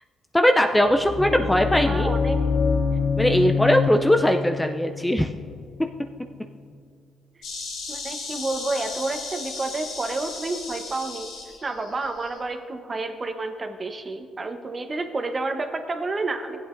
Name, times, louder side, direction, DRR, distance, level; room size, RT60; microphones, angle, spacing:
voice 1, 0.3-2.1 3.2-5.3, equal, 10° left, 5 dB, 0.4 m, -20 dB
sound 1, 0.8-6.6, left 5 dB, 45° left, 0.8 m, -26 dB
voice 2, 1.9-2.4 7.9-11.3 11.6-16.6, right 3 dB, 30° right, 6 dB, 0.9 m, -30 dB
Insect, 7.4-12.4, left 4 dB, 85° left, 1.9 m, -36 dB
15.0 x 8.6 x 2.6 m, 2.2 s
cardioid pair, 90°, 0 cm